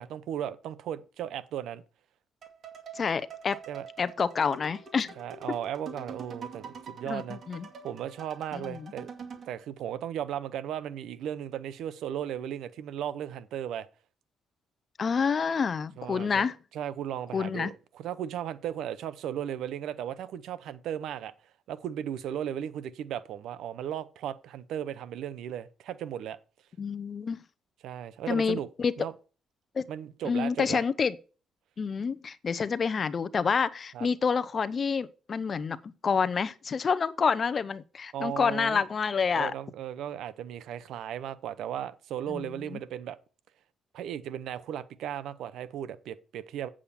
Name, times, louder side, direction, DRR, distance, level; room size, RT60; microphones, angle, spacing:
voice 1, 0.0-1.8 3.7-3.9 5.2-7.4 7.8-9.1 9.5-13.9 16.0-16.5 16.7-21.3 21.7-26.4 27.8-28.7 29.0-29.1 29.9-30.8 33.9-34.1 38.1-38.8 39.3-43.2 43.9-46.7, right 10 dB, 80° right, 0.8 m, -36 dB
sound 1, 2.4-9.5, right 5 dB, 55° right, 2.3 m, -45 dB
voice 2, 2.9-3.6 4.0-5.1 7.1-7.7 8.5-8.9 15.0-16.5 17.3-17.7 26.8-27.4 28.3-28.9 29.8-29.9 30.2-31.2 31.8-39.5 42.3-42.8, left 5 dB, 45° left, 0.7 m, -28 dB
8.5 x 7.4 x 4.2 m
cardioid pair, 90°, 0 cm